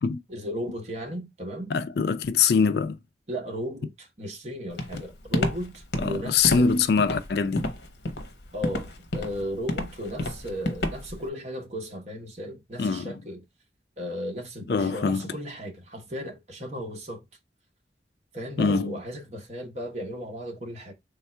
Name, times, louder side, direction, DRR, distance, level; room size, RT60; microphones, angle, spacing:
voice 1, 0.3-1.7 3.3-6.7 8.5-13.4 14.0-17.3 18.3-20.9, equal, 40° right, 1.1 m, -35 dB
voice 2, 1.7-3.0 6.0-7.7 12.8-13.2 14.7-15.3 18.6-19.0, left 5 dB, 65° left, 0.4 m, -23 dB
Walk footsteps, 4.8-11.2, left 1 dB, 85° left, 0.8 m, -30 dB
3.6 x 2.4 x 4.3 m
head